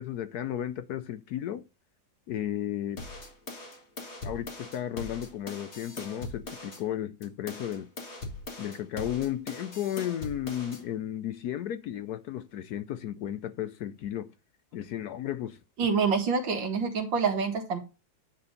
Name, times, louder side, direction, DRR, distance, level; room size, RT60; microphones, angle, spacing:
voice 1, 0.0-1.6 2.3-3.0 4.2-7.9 8.6-14.3 14.7-15.6, left 11 dB, 70° left, 1.0 m, -34 dB
sound 1, 3.0-6.8 7.2-10.8, left 2 dB, 35° left, 2.0 m, -41 dB
voice 2, 15.8-17.8, right 5 dB, 75° right, 2.4 m, -27 dB
9.7 x 4.3 x 5.1 m
omnidirectional pair, 2.0 m